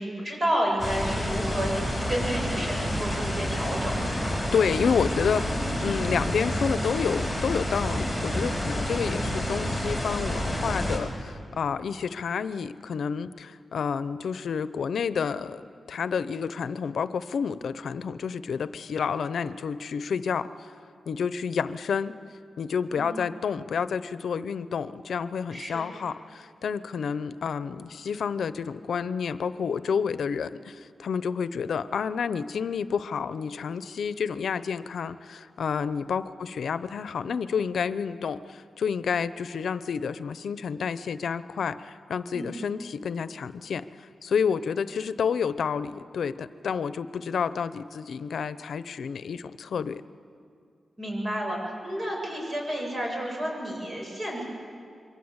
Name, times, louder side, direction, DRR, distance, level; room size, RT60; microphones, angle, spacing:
voice 1, 0.0-1.7 2.1-4.3 5.4-6.0 22.9-23.1 25.5-25.9 42.3-42.5 51.0-54.4, equal, 30° right, -1 dB, 7.4 m, -31 dB
sound 1, 0.8-11.0, equal, 5° right, 5.0 m, -29 dB
voice 2, 4.5-5.6 5.8-20.5 21.1-22.2 22.6-43.8 44.2-50.0, left 6 dB, 85° left, 14 dB, 0.7 m, -29 dB
26.5 x 23.0 x 8.1 m, 2.3 s
wide cardioid pair, 120°, 0 cm